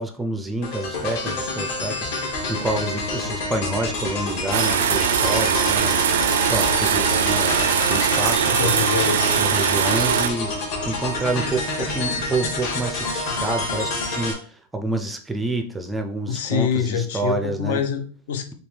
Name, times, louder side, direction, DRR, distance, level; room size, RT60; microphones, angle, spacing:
voice 1, 0.0-6.1 6.5-8.8 9.4-10.5 10.9-17.8, right 2 dB, 5° right, 6 dB, 0.4 m, -28 dB
sound 1, 0.6-14.3, left 3 dB, 55° left, 2.0 m, -27 dB
sound 2, 4.5-10.3, right 9 dB, 85° right, 0.4 m, -21 dB
voice 2, 8.5-9.3 10.9-11.0 16.3-18.5, left 7 dB, 70° left, 7 dB, 0.8 m, -25 dB
6.6 x 2.3 x 3.3 m, 0.42 s
supercardioid pair, 155°, 0 cm